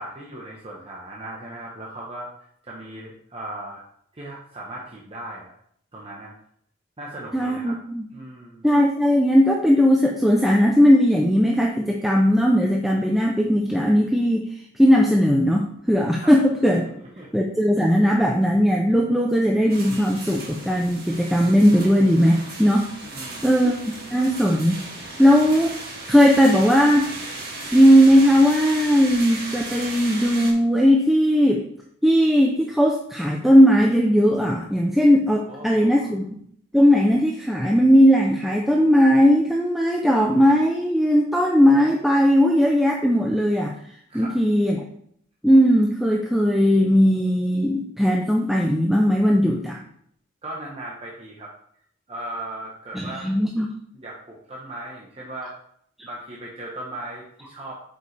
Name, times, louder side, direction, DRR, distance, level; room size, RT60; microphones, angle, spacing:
voice 1, 0.0-2.3 2.6-3.8 4.1-5.5 5.9-6.3 7.0-7.8 8.1-8.7 16.2-16.3 17.0-17.3 23.0-23.5 35.5-36.1 44.1-44.3 50.4-51.5 52.1-53.3 53.9-55.5 56.0-57.8, right 1 dB, 25° right, -4 dB, 1.0 m, -37 dB
voice 2, 7.3-8.0 8.6-14.4 14.7-16.9 17.3-22.9 23.4-23.7 24.1-24.8 25.2-25.7 26.1-27.1 27.7-31.6 32.0-36.4 36.7-43.7 44.1-44.8 45.4-49.8 52.9-53.7, equal, ahead, 0 dB, 0.5 m, -18 dB
sound 1, 19.7-30.5, right 2 dB, 45° right, 1.9 m, -36 dB
8.1 x 5.3 x 3.3 m, 0.66 s
head